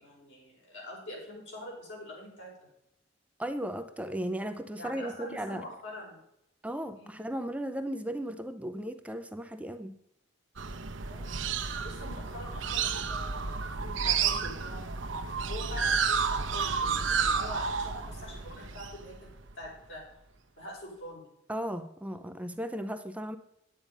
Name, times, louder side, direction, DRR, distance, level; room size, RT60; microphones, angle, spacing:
voice 1, 0.0-2.5 4.8-6.2 6.9-7.2 11.0-11.4 11.8-15.0 15.5-20.0 20.6-21.3, left 1 dB, 70° left, 4.9 m, -44 dB
voice 2, 3.4-5.6 6.6-10.0 21.5-23.4, right 1 dB, 5° right, 0.5 m, -36 dB
sound 1, 10.6-19.6, right 6 dB, 80° right, 0.9 m, -31 dB
9.5 x 9.0 x 5.3 m
head